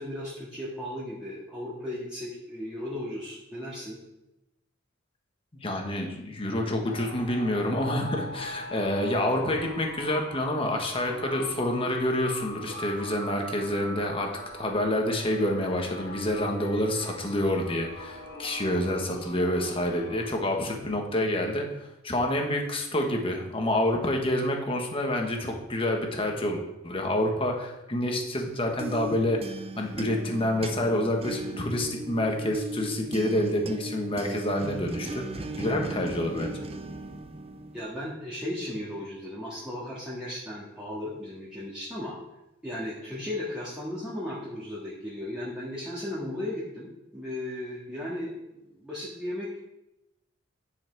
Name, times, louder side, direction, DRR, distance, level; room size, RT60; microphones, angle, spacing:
voice 1, 0.0-4.0 37.7-42.2 42.6-49.6, left 1 dB, 5° right, -9 dB, 1.8 m, -36 dB
voice 2, 5.5-36.6, left 1 dB, 25° left, 2 dB, 1.3 m, -28 dB
sound 1, 6.8-20.3, left 1 dB, 55° left, 1.6 m, -41 dB
sound 2, 28.5-38.1, right 2 dB, 30° right, 0.5 m, -38 dB
10.5 x 5.8 x 4.6 m, 0.92 s
head